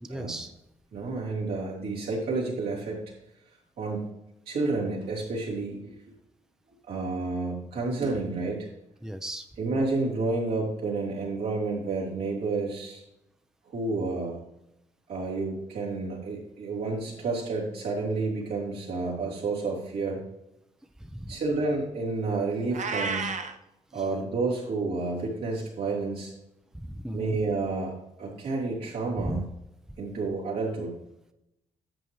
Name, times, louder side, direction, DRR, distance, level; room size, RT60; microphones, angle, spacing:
voice 1, 0.0-0.5 9.0-9.5 21.0-21.4 23.9-24.0 26.7-27.4 29.2-29.4, right 1 dB, 5° right, 7 dB, 0.7 m, -36 dB
voice 2, 0.9-3.0 3.8-4.2 4.4-5.9 6.9-8.7 9.6-13.0 13.7-14.4 15.1-20.2 21.3-23.3 23.9-26.3 27.1-29.5 30.0-30.9, right 3 dB, 75° right, -6 dB, 3.4 m, -30 dB
Meow, 22.7-23.6, right 4 dB, 50° right, 0.9 m, -31 dB
11.0 x 7.5 x 3.2 m, 0.86 s
hypercardioid pair, 45°, 16 cm